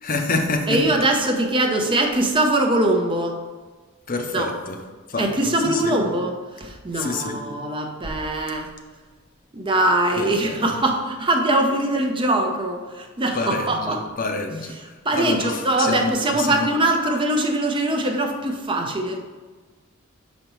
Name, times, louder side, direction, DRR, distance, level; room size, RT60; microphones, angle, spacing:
voice 1, 0.0-0.8 4.1-4.8 5.1-6.0 6.9-7.4 10.2-10.6 13.3-16.7, left 3 dB, 40° left, 4 dB, 0.6 m, -27 dB
voice 2, 0.7-3.4 4.3-4.5 5.2-8.7 9.5-14.0 15.0-19.2, right 1 dB, 25° right, 3 dB, 0.6 m, -22 dB
6.5 x 5.1 x 3.0 m, 1.3 s
head